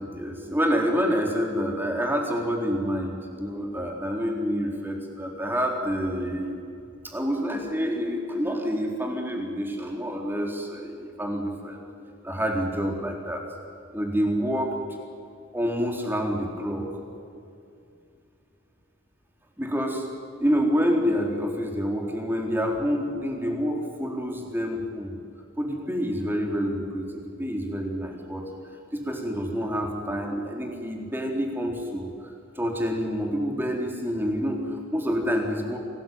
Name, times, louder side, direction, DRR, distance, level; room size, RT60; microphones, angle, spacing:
voice 1, 0.0-6.6 7.0-11.8 12.2-13.4 13.9-14.8 15.5-16.9 19.6-20.1 20.4-25.1 25.6-28.5 28.9-35.8, equal, 10° right, 1 dB, 4.2 m, -28 dB
28.0 x 20.0 x 9.4 m, 2.5 s
head